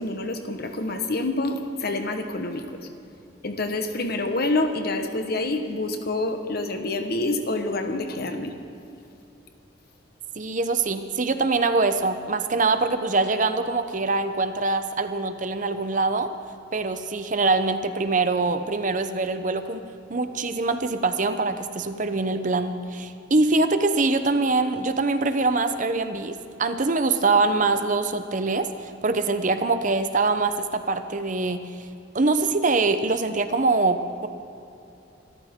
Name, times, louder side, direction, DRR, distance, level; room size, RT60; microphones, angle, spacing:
voice 1, 0.0-2.9 3.4-8.5, left 2 dB, 55° left, 6 dB, 1.3 m, -27 dB
voice 2, 10.4-16.3 16.7-19.8 20.1-31.7 32.1-34.3, right 3 dB, 45° right, 9 dB, 0.8 m, -24 dB
25.5 x 13.5 x 3.7 m, 2.7 s
head